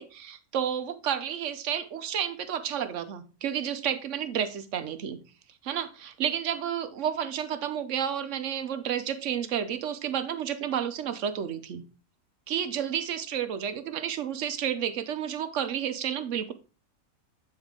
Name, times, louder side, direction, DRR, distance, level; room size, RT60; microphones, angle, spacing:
voice 1, 0.0-5.2 5.6-11.8 12.5-16.5, right 9 dB, 60° right, 10 dB, 1.0 m, -31 dB
9.0 x 4.4 x 3.7 m, 0.33 s
omnidirectional pair, 1.5 m